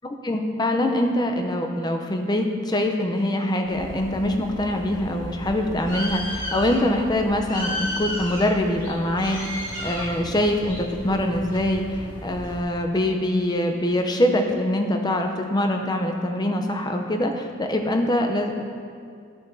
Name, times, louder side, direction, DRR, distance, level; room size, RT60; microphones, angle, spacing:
voice 1, 0.2-18.6, left 1 dB, 20° left, 4 dB, 0.6 m, -24 dB
Bird, 3.6-12.6, equal, 40° left, 2.0 m, -34 dB
12.5 x 6.8 x 2.7 m, 2.2 s
head